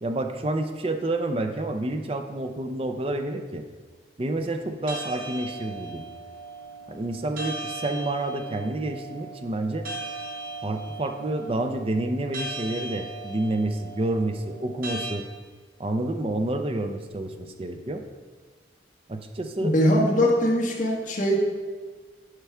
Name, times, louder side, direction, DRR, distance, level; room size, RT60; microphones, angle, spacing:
voice 1, 0.0-3.6 4.2-6.1 6.9-9.9 10.6-15.3 15.8-18.0 19.1-19.7, right 2 dB, 30° right, 6 dB, 0.5 m, -29 dB
sound 1, 4.9-15.1, right 2 dB, 50° right, 1.1 m, -38 dB
voice 2, 19.6-21.4, equal, 45° left, -2 dB, 1.4 m, -21 dB
11.5 x 4.6 x 3.5 m, 1.4 s
head